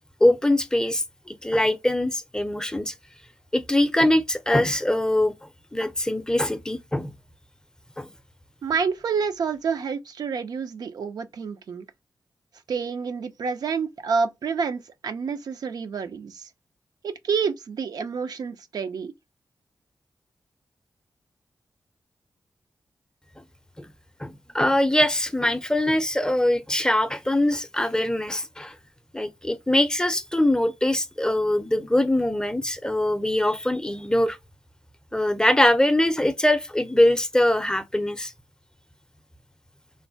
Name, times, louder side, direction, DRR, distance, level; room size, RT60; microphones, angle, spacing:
voice 1, 0.2-2.9 3.5-7.1 8.0-8.1 23.8-23.9 24.2-28.8 29.1-34.4 35.1-38.3, left 1 dB, 10° left, 0.5 m, -22 dB
voice 2, 8.6-11.9 12.7-16.5 17.0-19.1, right 5 dB, 75° right, 0.4 m, -28 dB
3.1 x 2.1 x 2.6 m
cardioid pair, 50°, 7 cm